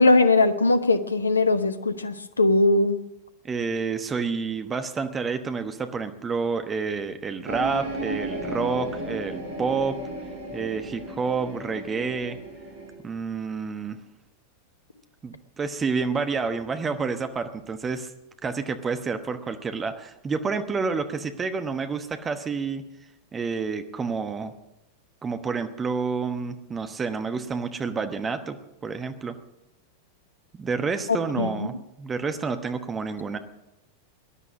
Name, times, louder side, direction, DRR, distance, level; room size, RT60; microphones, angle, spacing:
voice 1, 0.0-3.0 31.4-31.7, left 2 dB, 75° left, 12 dB, 1.0 m, -20 dB
voice 2, 3.4-10.0 10.5-12.4 13.0-14.0 15.2-18.1 18.4-22.8 23.3-24.5 25.2-28.6 28.8-29.3 30.6-33.4, right 5 dB, 20° right, 9 dB, 1.1 m, -29 dB
sound 1, 7.5-12.9, right 1 dB, 60° right, 5.2 m, -34 dB
18.5 x 11.0 x 6.4 m, 0.90 s
figure-of-eight pair, 90°, 0 cm